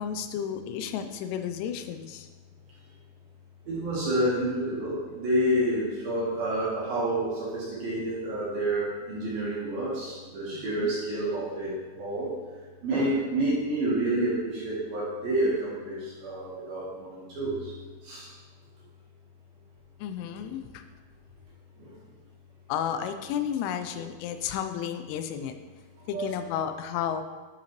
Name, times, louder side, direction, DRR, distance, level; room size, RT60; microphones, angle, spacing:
voice 1, 0.0-2.3 10.5-10.9 20.0-20.8 22.7-25.5 26.1-27.2, left 9 dB, 90° left, 9 dB, 3.1 m, -32 dB
voice 2, 3.7-12.3 12.8-17.7 18.0-18.3 20.4-20.5 21.8-21.9 23.9-24.0 26.1-26.4, right 1 dB, 65° right, -6 dB, 2.7 m, -29 dB
9.9 x 5.8 x 3.0 m, 1.3 s
omnidirectional pair, 5.5 m